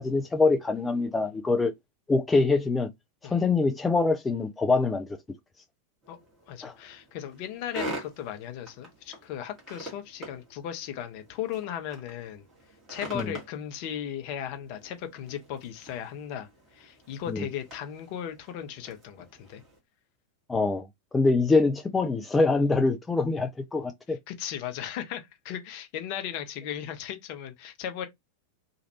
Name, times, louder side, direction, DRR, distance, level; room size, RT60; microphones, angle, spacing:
voice 1, 0.0-1.7 2.1-2.9 3.2-5.2 6.6-6.7 13.1-13.3 17.3-17.5 20.5-20.9 21.1-24.2, left 3 dB, 10° left, 0.4 m, -24 dB
sound 1, 6.0-19.8, right 1 dB, 25° right, 1.5 m, -45 dB
voice 2, 6.5-12.4 12.9-19.6 24.1-28.1, left 10 dB, 45° left, 0.7 m, -36 dB
3.0 x 2.5 x 2.8 m
figure-of-eight pair, 90°, 0 cm